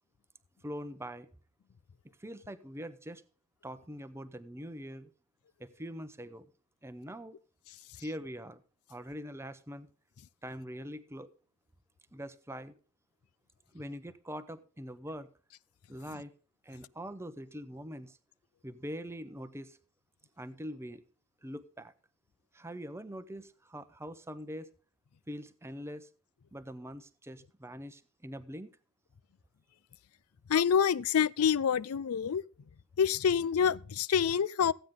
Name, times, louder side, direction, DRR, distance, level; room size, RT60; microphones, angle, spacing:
voice 1, 0.6-1.3 2.2-3.2 3.6-5.1 5.6-6.5 6.8-7.4 8.0-8.6 8.9-9.9 10.4-11.3 12.1-12.8 13.7-15.3 15.9-16.3 16.6-18.2 18.6-19.8 20.4-21.0 21.4-21.9 22.5-24.7 25.3-26.1 26.5-28.7, equal, 10° right, 0.7 m, -43 dB
voice 2, 30.5-32.4 33.0-34.7, left 7 dB, 85° left, 0.4 m, -27 dB
15.0 x 9.0 x 3.7 m
head